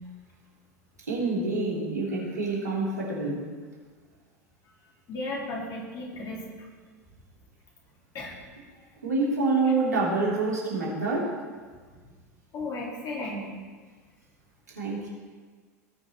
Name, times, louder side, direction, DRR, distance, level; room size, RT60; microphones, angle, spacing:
voice 1, 1.1-3.5 9.0-11.4 14.7-15.1, right 3 dB, 90° right, -5 dB, 3.6 m, -27 dB
voice 2, 5.1-6.7 8.1-8.4 12.5-13.4, left 2 dB, 45° left, -3 dB, 4.1 m, -35 dB
18.0 x 6.3 x 4.6 m, 1.5 s
hypercardioid pair, 85°, 9 cm